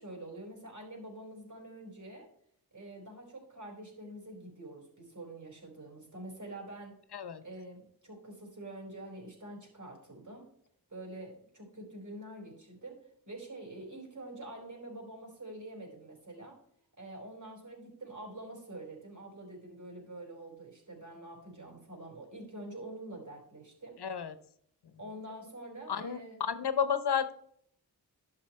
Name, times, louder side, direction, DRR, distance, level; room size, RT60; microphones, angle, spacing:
voice 1, 0.0-2.3 2.7-7.0 7.4-10.5 10.9-16.6 17.0-24.0 25.0-26.4, right 1 dB, 50° right, 0 dB, 4.2 m, -46 dB
voice 2, 7.1-7.4 24.0-24.4 24.8-25.0 25.9-27.3, left 7 dB, 85° left, 12 dB, 0.9 m, -32 dB
11.5 x 6.0 x 4.3 m, 0.66 s
wide cardioid pair, 95°, 38 cm